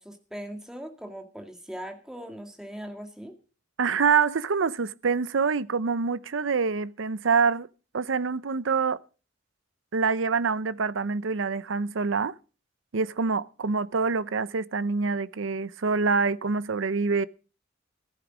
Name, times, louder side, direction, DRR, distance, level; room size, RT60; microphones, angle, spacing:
voice 1, 0.0-3.3, equal, 5° right, 2.0 m, -40 dB
voice 2, 3.8-7.7 7.9-9.0 9.9-12.3 12.9-17.3, right 5 dB, 85° right, 0.6 m, -26 dB
14.0 x 12.0 x 5.0 m
head